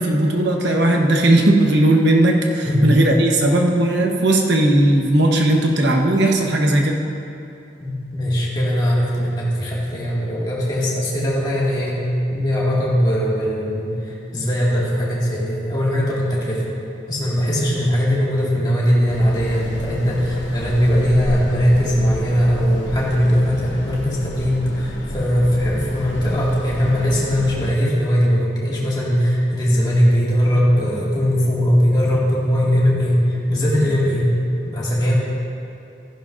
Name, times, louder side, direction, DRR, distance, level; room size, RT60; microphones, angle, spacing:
voice 1, 0.0-7.0, right 1 dB, 75° right, 1 dB, 1.1 m, -17 dB
voice 2, 7.8-12.0 12.3-16.6 17.1-34.3 34.7-35.1, equal, 25° left, -7 dB, 2.1 m, -19 dB
sound 1, 19.1-27.7, left 1 dB, 85° left, 0.9 m, -31 dB
14.5 x 10.5 x 2.6 m, 2.6 s
head